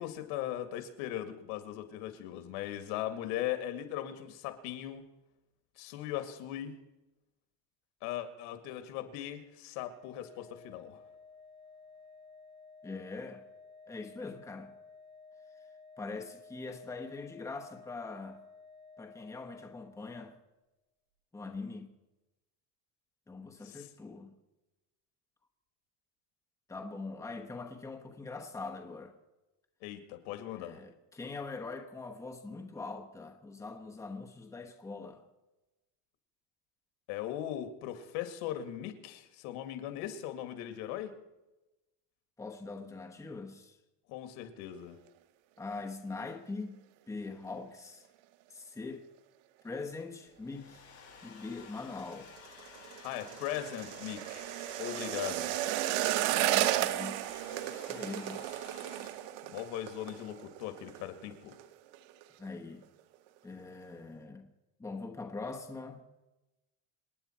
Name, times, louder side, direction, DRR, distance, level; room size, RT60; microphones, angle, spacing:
voice 1, 0.0-5.1 5.8-6.8 8.0-11.0 23.6-23.9 29.8-30.8 37.1-41.1 44.1-45.0 53.0-54.5 54.8-55.6 59.5-61.6, left 12 dB, 85° left, 2.2 m, -39 dB
Organ, 9.7-20.4, left 4 dB, 35° right, 6.3 m, -55 dB
voice 2, 12.8-13.4 13.9-14.7 16.0-18.4 19.0-20.4 21.3-21.9 23.3-24.3 26.7-29.2 30.5-35.2 42.4-43.8 45.6-46.8 47.1-48.1 48.5-49.1 49.6-50.9 51.2-52.3 56.3-57.3 57.9-58.5 62.4-62.8 63.4-64.5 64.8-66.0, left 3 dB, 5° left, 1.0 m, -42 dB
Domestic sounds home sounds, 50.3-59.5, left 6 dB, 35° left, 7.5 m, -54 dB
sound 1, 52.0-61.0 61.3-61.7 61.9-62.5 62.8-62.9, right 14 dB, 70° right, 1.0 m, -34 dB
27.0 x 9.8 x 4.5 m
cardioid pair, 165°, 46 cm